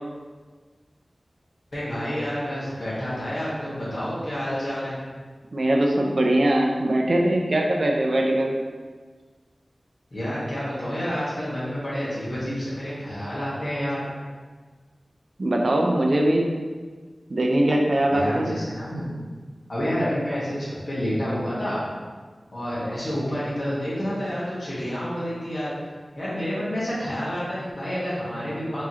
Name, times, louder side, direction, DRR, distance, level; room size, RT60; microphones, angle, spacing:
voice 1, 1.7-5.0 10.1-14.1 18.1-19.2 19.7-21.8 22.5-25.7 26.2-28.9, equal, 50° left, -10 dB, 1.3 m, -29 dB
voice 2, 5.5-8.6 15.4-16.5 17.3-18.6, right 1 dB, 60° right, 0 dB, 0.5 m, -21 dB
4.6 x 3.0 x 2.8 m, 1.5 s
wide cardioid pair, 75°, 0 cm